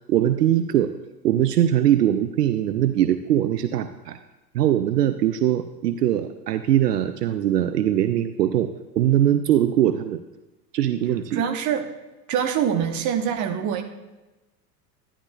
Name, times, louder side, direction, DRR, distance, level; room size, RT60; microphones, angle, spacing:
voice 1, 0.1-0.9 1.2-4.2 4.5-8.7 9.0-10.2 10.7-11.4, right 11 dB, 75° right, 10 dB, 0.6 m, -21 dB
voice 2, 11.3-11.8 12.3-13.8, right 8 dB, 35° right, 5 dB, 1.1 m, -24 dB
12.0 x 10.5 x 2.3 m, 1.1 s
figure-of-eight pair, 80°, 49 cm